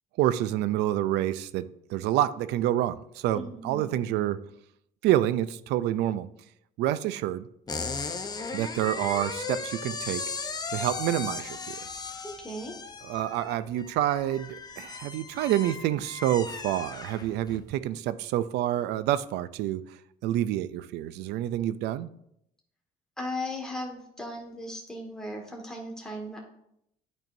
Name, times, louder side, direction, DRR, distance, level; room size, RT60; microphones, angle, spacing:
voice 1, 0.2-4.4 5.0-6.3 6.8-7.5 8.5-10.3 10.7-11.8 13.0-19.8 20.2-22.1, right 13 dB, 80° right, 0.4 m, -28 dB
voice 2, 3.3-4.2 12.2-12.7 23.2-26.4, left 1 dB, 5° left, 1.5 m, -37 dB
sound 1, 7.7-17.6, left 4 dB, 25° left, 0.6 m, -37 dB
11.0 x 4.4 x 2.6 m
cardioid pair, 110°, 17 cm